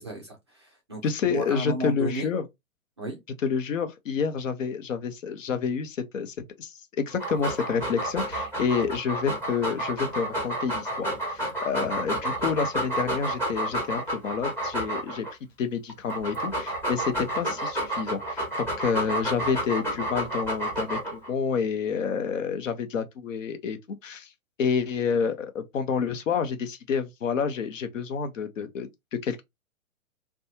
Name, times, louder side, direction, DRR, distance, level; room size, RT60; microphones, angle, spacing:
voice 1, 0.0-2.3 3.0-3.2, equal, 20° right, 0.3 m, -34 dB
voice 2, 1.0-2.4 3.4-15.3 15.6-24.3 24.6-28.9 29.2-29.4, left 6 dB, 60° left, 0.8 m, -29 dB
Dog, 7.1-15.3 15.9-21.3, right 1 dB, 5° left, 0.7 m, -30 dB
2.5 x 2.3 x 2.8 m
figure-of-eight pair, 125°, 42 cm